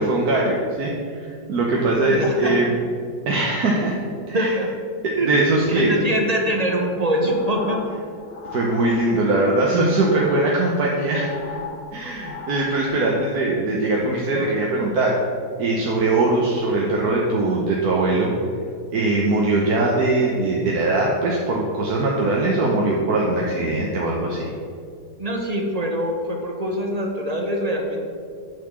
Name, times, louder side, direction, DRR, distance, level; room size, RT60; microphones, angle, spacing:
voice 1, 0.0-2.7 3.3-4.0 4.3-4.6 5.2-5.9 8.5-11.6 11.9-15.2 15.6-18.3 18.9-24.5, right 2 dB, 60° right, -2 dB, 1.4 m, -21 dB
voice 2, 2.0-2.5 4.3-4.7 5.2-7.8 13.1-13.2 14.3-14.5 25.2-28.1, equal, 40° right, 1 dB, 0.5 m, -24 dB
sound 1, 6.9-9.5 9.8-13.3, left 5 dB, 75° left, 1.7 m, -37 dB
9.4 x 4.1 x 7.2 m, 2.2 s
omnidirectional pair, 1.9 m